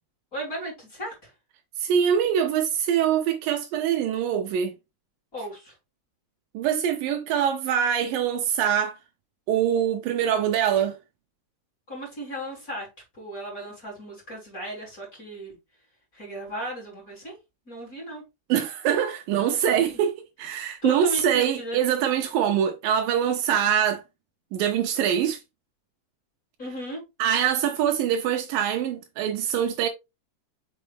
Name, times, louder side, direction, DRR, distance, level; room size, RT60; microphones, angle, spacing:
voice 1, 0.3-1.3 5.3-5.7 11.9-12.9 13.1-15.5 16.1-17.4 17.7-18.2 19.9-20.0 20.8-21.8 26.6-27.0, equal, 20° left, 3.4 m, -35 dB
voice 2, 1.8-4.7 6.5-9.0 9.5-11.0 18.5-24.0 24.5-25.4 27.2-29.9, right 9 dB, 85° right, 2.0 m, -24 dB
6.5 x 5.1 x 3.4 m
omnidirectional pair, 5.2 m